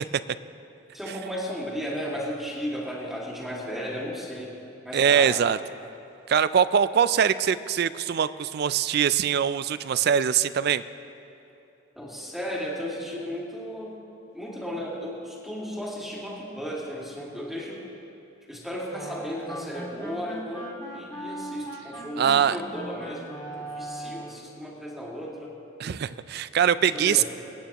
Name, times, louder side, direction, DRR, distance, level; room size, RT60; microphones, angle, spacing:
voice 1, 0.9-4.5 4.8-5.4 12.0-13.9 14.3-17.8 18.5-25.5 26.9-27.2, equal, ahead, -5 dB, 2.1 m, -35 dB
voice 2, 4.9-5.6 6.3-10.8 22.2-22.6 25.8-27.2, right 8 dB, 50° right, 15 dB, 0.3 m, -22 dB
sound 1, 18.9-24.5, right 1 dB, 20° left, 1.9 m, -39 dB
25.5 x 9.3 x 3.0 m, 2.9 s
head